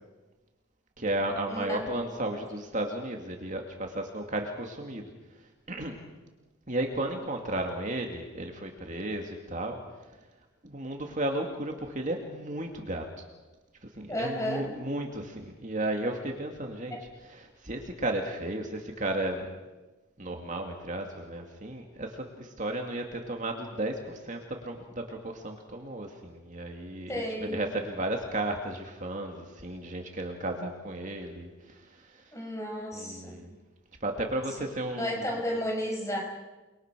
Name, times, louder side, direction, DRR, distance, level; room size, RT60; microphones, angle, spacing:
voice 1, 1.0-6.0 6.7-10.3 10.6-13.2 13.8-17.0 17.2-19.5 20.2-32.3 32.9-33.6 34.0-35.6, right 1 dB, 35° right, 2 dB, 2.3 m, -34 dB
voice 2, 1.5-2.0 14.1-14.7 16.9-17.0 27.1-27.6 32.3-33.3 35.0-36.2, equal, 15° left, 1 dB, 5.9 m, -33 dB
29.5 x 22.5 x 6.2 m, 1.2 s
head